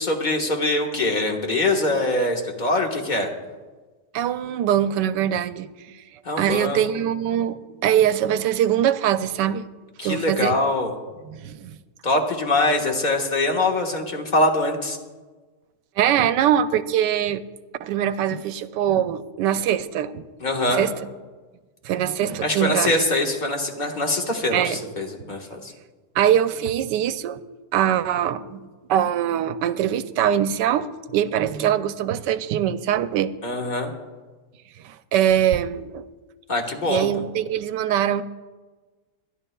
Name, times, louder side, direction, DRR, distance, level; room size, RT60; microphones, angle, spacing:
voice 1, 0.0-3.3 6.2-6.8 10.0-10.9 12.0-15.0 20.4-20.9 22.4-25.7 33.4-33.9 36.5-37.1, left 2 dB, 30° left, 1.4 m, -23 dB
voice 2, 4.1-5.7 6.4-9.7 10.0-10.6 11.3-11.8 16.0-17.4 17.8-20.2 20.7-20.9 21.8-23.0 24.5-24.9 26.2-27.4 27.7-33.3 34.8-36.0 36.9-38.2, right 10 dB, 90° right, 1.2 m, -22 dB
24.0 x 11.0 x 2.3 m
omnidirectional pair, 1.8 m